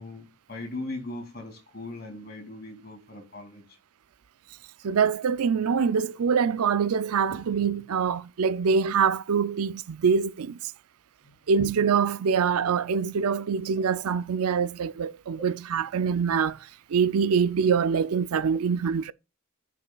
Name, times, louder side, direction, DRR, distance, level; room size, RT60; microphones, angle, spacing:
voice 1, 0.0-3.8 11.2-11.4, left 2 dB, 45° left, 2.5 m, -39 dB
voice 2, 4.8-10.7 11.5-16.6 16.9-19.1, right 6 dB, 85° right, 0.4 m, -24 dB
9.6 x 5.5 x 2.3 m
head